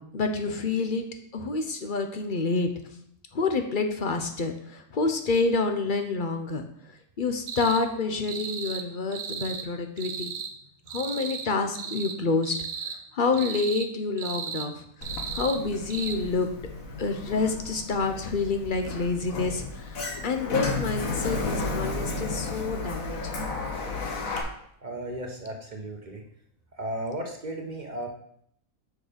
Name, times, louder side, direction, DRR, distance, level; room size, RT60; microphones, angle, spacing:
voice 1, 0.1-1.0 1.3-2.7 3.3-6.7 7.2-10.3 10.9-12.6 13.1-14.8 15.3-16.5 17.0-23.4, left 4 dB, 40° left, 5 dB, 0.8 m, -28 dB
sound 1, 7.5-7.8 8.2-8.8 9.1-9.7 10.0-10.5 10.9-11.5 11.7-12.2 12.4-13.0 13.3-13.9 14.2-14.7 15.0-15.6 15.9-16.1, right 6 dB, 65° right, 1.2 m, -35 dB
Sliding door, 15.0-24.4, left 3 dB, 70° left, 1.6 m, -33 dB
voice 2, 24.8-26.2 26.8-28.1, right 1 dB, 35° right, 2 dB, 1.1 m, -35 dB
6.4 x 6.4 x 5.1 m, 0.69 s
omnidirectional pair, 1.5 m